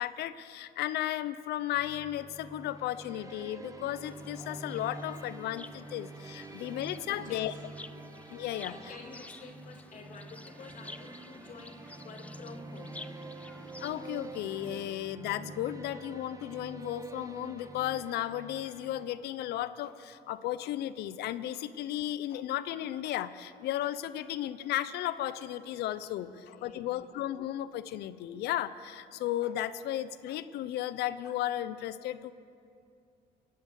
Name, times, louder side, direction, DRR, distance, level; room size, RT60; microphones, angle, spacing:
voice 1, 0.0-7.5 8.3-8.8 13.8-32.3, left 13 dB, 75° left, 14 dB, 0.7 m, -34 dB
sound 1, 1.7-19.4, right 3 dB, 20° right, 1.0 m, -47 dB
sound 2, 4.0-14.9, left 2 dB, 10° left, 0.4 m, -51 dB
voice 2, 7.1-7.6 8.2-13.1 26.2-27.0, left 4 dB, 50° left, 1 dB, 2.4 m, -49 dB
22.0 x 8.7 x 7.1 m, 2.5 s
cardioid pair, 110°, 17 cm